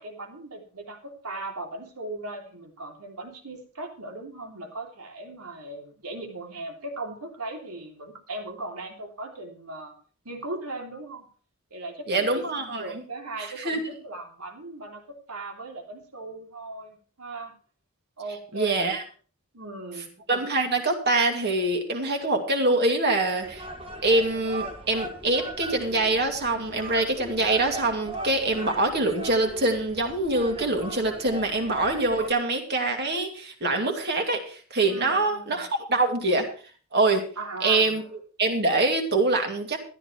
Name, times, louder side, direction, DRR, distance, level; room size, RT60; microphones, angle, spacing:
voice 1, 0.0-9.9 10.2-11.3 11.7-17.5 18.2-19.0 19.5-20.1 34.9-35.6 37.4-38.1, right 2 dB, 85° right, 3 dB, 3.2 m, -38 dB
voice 2, 12.1-12.9 13.6-13.8 18.5-19.0 20.3-23.7 24.0-36.5 36.9-37.2 37.6-38.0 38.4-39.8, right 2 dB, 45° right, 3 dB, 2.5 m, -24 dB
sound 1, 23.4-32.3, right 2 dB, 25° right, 1.8 m, -39 dB
13.5 x 11.0 x 4.5 m, 0.40 s
head